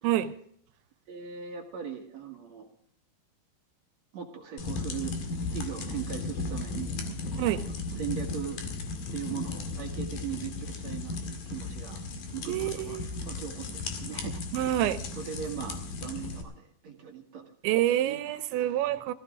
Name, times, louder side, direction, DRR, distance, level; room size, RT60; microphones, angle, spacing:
voice 1, 1.1-2.7 4.1-5.1 5.5-7.0 7.3-7.7 8.0-8.6 9.1-12.0 12.3-14.4 15.2-17.5 18.0-18.2 18.5-18.8, right 8 dB, 55° right, 2 dB, 2.2 m, -39 dB
sound 1, 4.6-16.4, left 3 dB, 55° left, 3.3 m, -36 dB
voice 2, 12.5-13.1 14.5-15.0 17.6-19.1, right 13 dB, 80° right, 12 dB, 3.1 m, -27 dB
18.0 x 16.5 x 3.7 m, 0.63 s
omnidirectional pair, 5.3 m